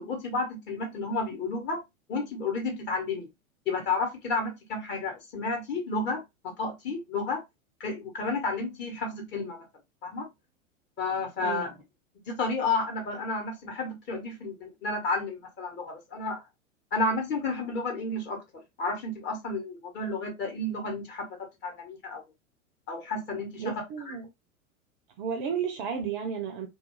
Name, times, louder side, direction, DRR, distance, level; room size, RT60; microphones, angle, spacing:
voice 1, 0.0-1.8 2.1-3.3 3.7-7.4 7.8-9.6 10.0-10.3 11.0-11.7 12.3-16.4 16.9-22.2 22.9-23.7 24.1-24.2, left 3 dB, 25° left, 1.0 m, -31 dB
voice 2, 23.6-24.3 25.2-26.7, right 7 dB, 40° right, 0.5 m, -32 dB
2.3 x 2.3 x 2.9 m
figure-of-eight pair, 95°, 42 cm